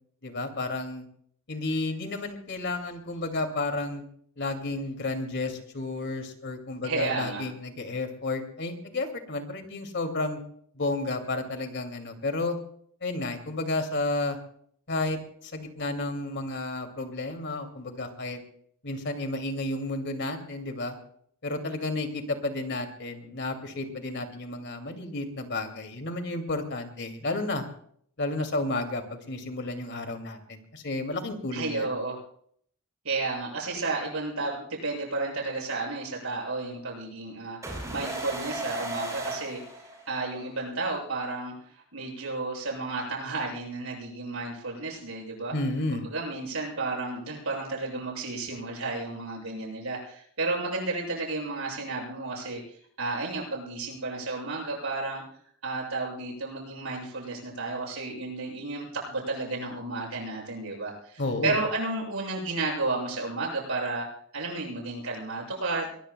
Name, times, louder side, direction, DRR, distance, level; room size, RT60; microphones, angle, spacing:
voice 1, 0.2-1.1 1.5-4.0 4.4-10.4 10.7-12.6 13.0-14.4 14.9-18.4 18.8-21.0 21.4-27.6 28.2-31.9 45.5-46.0 61.2-61.6, left 2 dB, 55° left, 6 dB, 2.5 m, -32 dB
voice 2, 6.8-7.4 31.5-32.2 33.0-37.6 37.9-39.6 40.1-41.5 41.9-45.5 45.9-55.2 55.6-64.1 64.3-65.9, right 3 dB, 70° right, -1 dB, 7.3 m, -32 dB
sound 1, 37.6-40.4, right 2 dB, 15° right, 6.3 m, -35 dB
23.5 x 20.5 x 2.3 m, 0.62 s
head